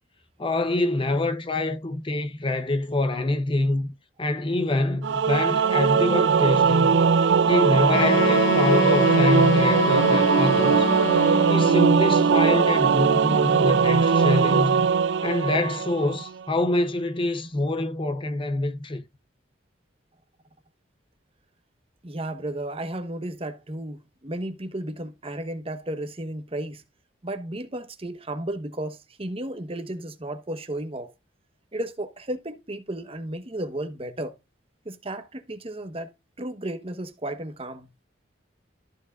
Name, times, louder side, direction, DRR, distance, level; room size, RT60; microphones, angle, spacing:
voice 1, 0.4-7.0 7.5-11.0 11.5-14.9 15.2-19.0, left 2 dB, 25° left, 0.7 m, -26 dB
Singing / Musical instrument, 5.0-16.3, right 5 dB, 65° right, 0.4 m, -20 dB
Wind instrument woodwind instrument, 7.9-12.0, left 4 dB, 85° left, 1.2 m, -26 dB
voice 2, 22.0-26.8 27.2-31.1 31.7-34.4 34.8-36.1 36.4-37.9, right 1 dB, 30° right, 1.0 m, -33 dB
14.0 x 4.8 x 2.4 m
head